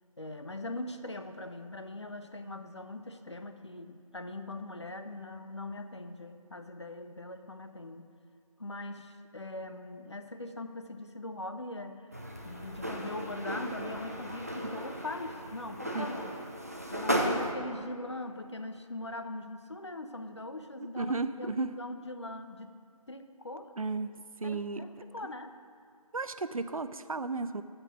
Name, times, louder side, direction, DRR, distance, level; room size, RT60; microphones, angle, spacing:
voice 1, 0.2-8.1 8.6-16.3 16.9-22.8 23.1-23.7 24.4-25.6, left 2 dB, 50° left, 8 dB, 0.6 m, -41 dB
sound 1, 12.1-17.5, equal, 25° right, 0.5 m, -35 dB
voice 2, 21.0-21.7 23.8-24.1 24.4-24.8 26.1-27.6, right 3 dB, 70° right, 12 dB, 0.5 m, -33 dB
13.5 x 5.2 x 6.1 m, 2.3 s
figure-of-eight pair, 170°, 19 cm